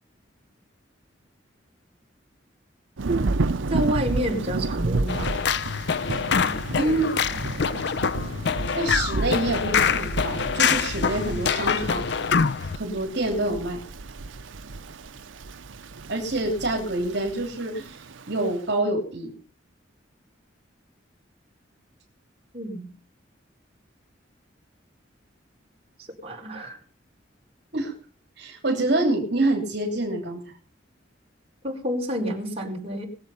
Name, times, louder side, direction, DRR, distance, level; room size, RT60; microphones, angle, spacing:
Thunder / Rain, 3.0-18.6, right 3 dB, 85° right, 0.7 m, -32 dB
voice 1, 3.7-5.4 22.5-22.9 26.0-26.8 31.6-33.1, equal, 30° right, -1 dB, 4.5 m, -29 dB
sound 1, 5.1-12.8, left 6 dB, 60° left, 0.6 m, -25 dB
voice 2, 6.8-7.1 8.7-12.0 12.7-13.8 16.1-19.3 27.7-27.9 28.4-30.6, right 2 dB, 60° right, 0 dB, 3.2 m, -26 dB
21.5 x 7.9 x 5.7 m, 0.40 s
head